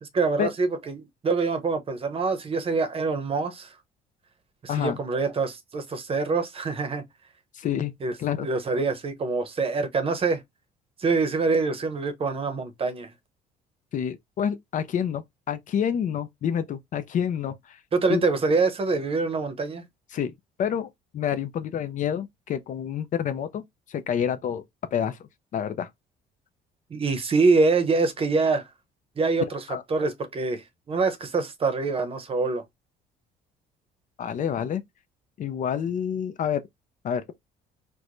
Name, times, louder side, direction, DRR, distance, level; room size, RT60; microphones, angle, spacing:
voice 1, 0.0-3.7 4.6-7.0 8.0-10.4 11.0-13.1 17.9-19.9 26.9-28.7 29.2-29.6 29.9-32.6, right 4 dB, 35° right, 0.8 m, -25 dB
voice 2, 7.5-7.9 8.2-8.5 13.9-17.8 18.1-18.2 20.1-20.3 20.6-24.6 24.9-25.9 29.7-29.8 34.2-34.8 35.4-36.6 37.0-37.2, left 8 dB, 50° left, 0.5 m, -28 dB
4.5 x 2.2 x 2.5 m
cardioid pair, 110°, 17 cm